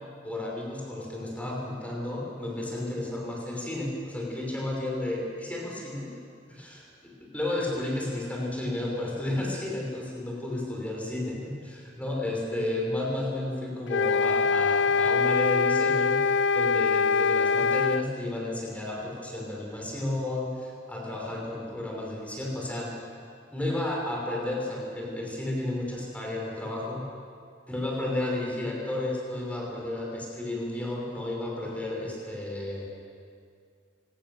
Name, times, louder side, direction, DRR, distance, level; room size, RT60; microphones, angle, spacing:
voice 1, 0.2-6.1 6.5-6.9 7.3-16.2 16.5-22.9 23.5-27.1 27.7-32.9, left 1 dB, 10° left, -2 dB, 5.9 m, -32 dB
sound 1, 13.9-18.1, left 4 dB, 80° left, 0.5 m, -23 dB
24.0 x 18.5 x 7.1 m, 2.2 s
head